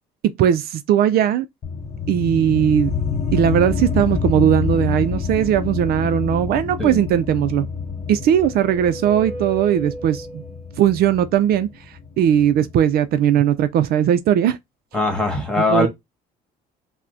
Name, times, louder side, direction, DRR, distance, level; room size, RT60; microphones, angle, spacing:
voice 1, 0.4-1.4 2.1-2.9 3.3-7.7 8.1-10.4 10.8-11.7 12.2-14.6 15.7-15.9, right 10 dB, 65° right, 0.4 m, -18 dB
sound 1, 1.6-12.7, left 5 dB, 40° left, 0.6 m, -27 dB
sound 2, 7.8-10.8, right 1 dB, 15° right, 2.3 m, -35 dB
voice 2, 14.9-15.9, left 2 dB, 5° left, 1.5 m, -20 dB
5.7 x 2.1 x 2.6 m
cardioid pair, 110°, 17 cm